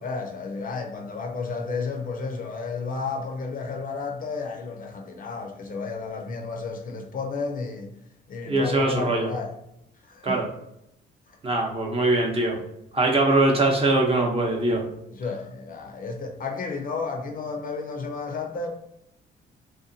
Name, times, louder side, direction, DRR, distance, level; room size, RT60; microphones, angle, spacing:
voice 1, 0.0-7.9 8.3-9.5 10.0-10.4 11.3-11.4 15.1-18.7, left 4 dB, 45° left, 0.5 m, -32 dB
voice 2, 8.5-9.3 10.2-10.5 11.4-12.6 12.9-14.9, right 2 dB, 30° right, 0.7 m, -22 dB
2.7 x 2.2 x 2.6 m
cardioid pair, 90°, 20 cm